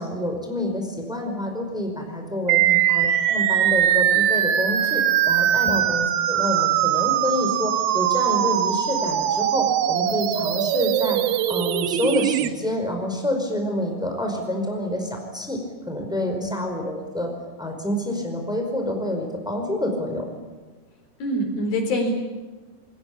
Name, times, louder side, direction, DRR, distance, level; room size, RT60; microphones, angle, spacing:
voice 1, 0.0-2.6 2.9-11.2 11.5-15.6 15.9-17.3 17.6-20.2, left 1 dB, ahead, 3 dB, 4.7 m, -27 dB
sound 1, 2.5-12.5, right 11 dB, 80° right, 2.9 m, -21 dB
voice 2, 21.2-22.1, equal, 75° left, 5 dB, 6.1 m, -25 dB
28.5 x 21.5 x 8.7 m, 1.3 s
omnidirectional pair, 4.2 m